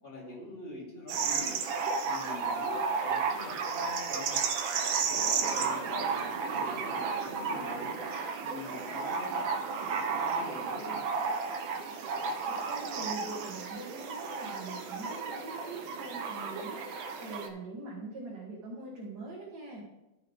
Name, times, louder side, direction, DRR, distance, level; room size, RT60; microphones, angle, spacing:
voice 1, 0.0-1.5 2.0-4.4 5.1-8.0 8.4-11.0, left 2 dB, 30° left, -5 dB, 3.0 m, -44 dB
sound 1, 1.1-17.5, right 5 dB, 85° right, 1.7 m, -33 dB
voice 2, 12.4-19.9, right 2 dB, 55° right, -4 dB, 2.1 m, -43 dB
14.0 x 5.7 x 3.5 m, 0.95 s
omnidirectional pair, 2.1 m